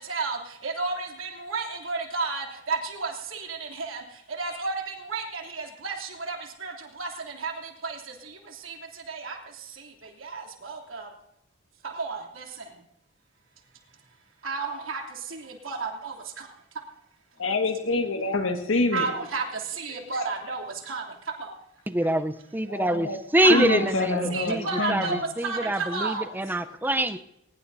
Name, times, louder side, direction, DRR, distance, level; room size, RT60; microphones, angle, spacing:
voice 1, 0.6-4.0 4.4-4.7 5.1-6.4 6.6-6.7 7.0-7.1 7.4-7.5 7.8-8.0 8.6-8.7 9.1-9.4 10.2-11.1 12.0-12.4 14.4-15.0 15.3-15.4 15.6-16.1 18.9-19.4 19.8-21.0 21.4-21.5 23.4-23.8 24.3-26.2, right 4 dB, 85° right, 1 dB, 3.1 m, -31 dB
voice 2, 17.4-19.1 19.9-20.0 22.0-22.2 22.7-23.2 23.5-25.2, left 3 dB, 75° left, 3 dB, 1.8 m, -26 dB
voice 3, 21.9-27.2, right 1 dB, 10° right, 9 dB, 0.7 m, -25 dB
21.0 x 20.5 x 2.8 m, 0.80 s
head